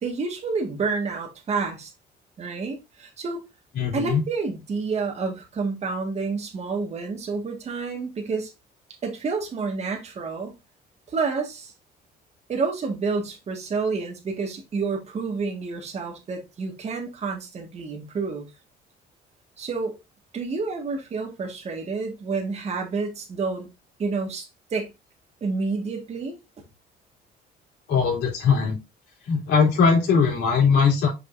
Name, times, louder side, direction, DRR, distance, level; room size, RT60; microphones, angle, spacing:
voice 1, 0.0-1.9 2.4-3.4 3.9-8.5 9.0-10.5 11.1-11.7 12.5-18.5 19.6-20.0 20.3-23.7 24.0-24.9 25.4-26.4, right 4 dB, 40° right, 2.0 m, -29 dB
voice 2, 3.7-4.2 27.9-28.8 29.2-31.1, left 5 dB, 80° left, 3.5 m, -20 dB
6.3 x 5.5 x 2.7 m
cardioid pair, 110°, 17 cm